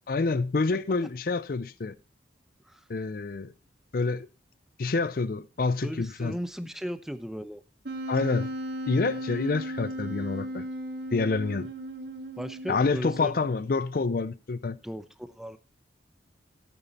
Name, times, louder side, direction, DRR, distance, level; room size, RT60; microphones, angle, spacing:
voice 1, 0.1-1.9 2.9-3.5 3.9-4.3 4.8-6.4 8.1-8.5 8.9-10.7 11.1-11.7 12.7-14.8, left 4 dB, 50° left, 0.5 m, -27 dB
voice 2, 5.8-7.6 12.4-13.3 14.8-15.6, equal, ahead, 0.7 m, -36 dB
Wind instrument woodwind instrument, 7.8-13.5, right 1 dB, 65° right, 1.9 m, -36 dB
13.0 x 9.0 x 4.1 m
head